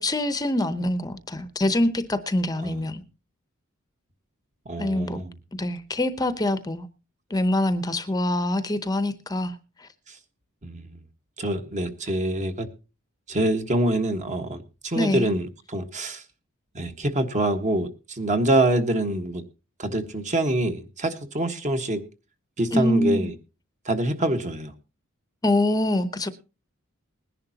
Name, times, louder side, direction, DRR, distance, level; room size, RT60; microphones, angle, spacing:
voice 1, 0.0-3.0 4.8-5.2 5.5-6.9 7.3-9.9 14.9-15.3 22.7-23.3 25.4-26.3, left 1 dB, 20° left, 0.7 m, -25 dB
voice 2, 4.6-5.4 10.1-10.2 10.6-11.0 11.4-12.7 13.3-16.2 16.7-19.4 19.8-22.1 22.6-23.3 23.8-24.7, right 1 dB, 35° right, 1.4 m, -25 dB
20.5 x 10.5 x 2.8 m
head